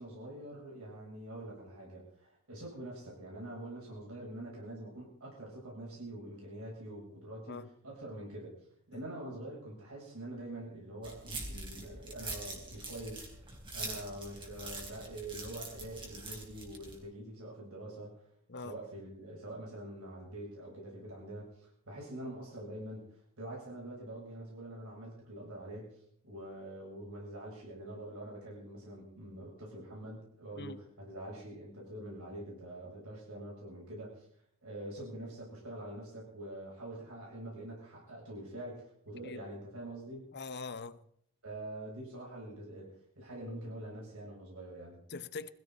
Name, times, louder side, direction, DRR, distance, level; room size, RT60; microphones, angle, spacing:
voice 1, 0.0-8.6 8.9-13.3 13.7-18.2 18.6-23.1 23.4-26.0 26.2-34.3 34.6-40.3 41.4-42.9 43.2-45.0, right 1 dB, 80° right, 7.7 m, -45 dB
sound 1, 11.0-17.0, right 2 dB, 25° right, 4.2 m, -44 dB
voice 2, 40.3-41.0 45.1-45.5, left 4 dB, 50° left, 0.9 m, -43 dB
20.5 x 16.5 x 4.1 m
head